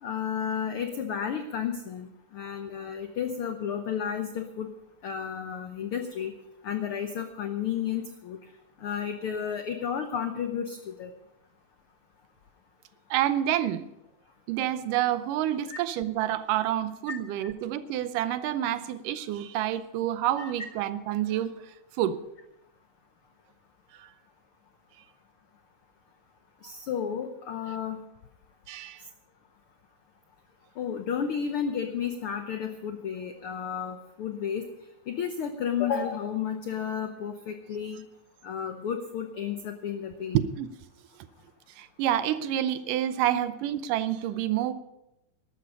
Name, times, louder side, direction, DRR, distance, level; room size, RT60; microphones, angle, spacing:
voice 1, 0.0-4.7 5.0-6.3 6.6-8.4 8.8-11.1 15.7-15.8 17.1-17.2 20.4-20.5 26.6-28.0 30.8-34.7 35.1-38.0 38.4-40.4, left 8 dB, 80° left, 7 dB, 1.2 m, -32 dB
voice 2, 13.1-13.9 14.5-21.5 22.0-22.2 23.9-24.1 28.7-29.0 40.3-40.7 41.8-44.7, right 12 dB, 90° right, 13 dB, 2.4 m, -28 dB
13.0 x 12.0 x 5.4 m, 0.88 s
omnidirectional pair, 3.6 m